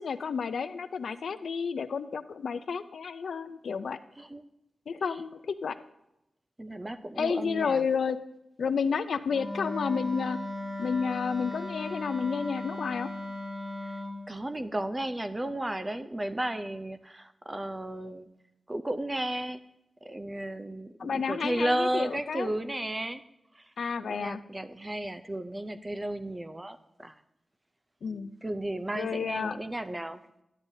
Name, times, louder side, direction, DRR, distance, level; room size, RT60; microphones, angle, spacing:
voice 1, 0.0-4.0 4.9-5.8 7.2-8.2 8.6-10.4 10.8-13.1 21.0-22.5 23.8-24.4 28.0-28.3 29.0-29.6, left 6 dB, 80° left, 12 dB, 0.4 m, -31 dB
voice 2, 6.6-7.8 13.8-13.9 14.3-18.3 18.7-19.6 20.0-23.2 24.0-27.1 28.4-30.2, right 1 dB, 15° right, 10 dB, 0.4 m, -33 dB
Wind instrument woodwind instrument, 9.3-14.2, left 1 dB, 35° right, 1.7 m, -37 dB
11.5 x 9.6 x 2.7 m, 0.87 s
wide cardioid pair, 150°, 0 cm